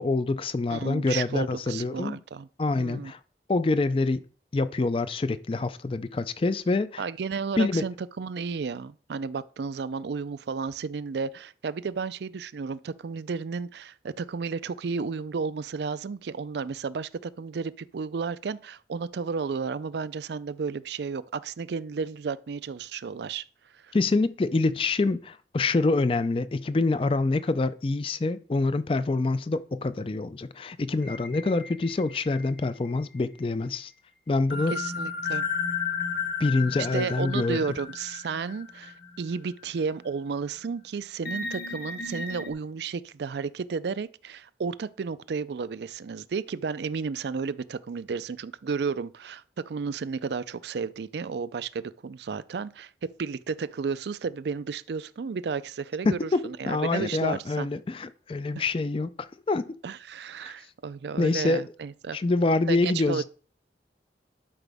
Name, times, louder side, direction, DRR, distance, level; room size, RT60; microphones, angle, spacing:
voice 1, 0.0-2.2 2.6-3.2 3.5-4.2 4.5-7.0 7.6-7.8 23.9-33.9 34.3-34.7 36.4-37.6 56.1-59.7 61.2-61.6 62.1-63.2, left 3 dB, 30° left, 0.4 m, -26 dB
voice 2, 0.7-2.5 2.8-3.1 7.0-23.4 23.7-23.9 34.7-35.4 36.8-57.7 58.5-58.6 59.8-62.2 62.7-63.2, right 5 dB, 70° right, 0.4 m, -33 dB
sound 1, 31.0-33.0 34.5-39.3 39.8-39.9 41.2-42.5, left 5 dB, 55° left, 1.3 m, -34 dB
12.0 x 5.0 x 3.5 m
head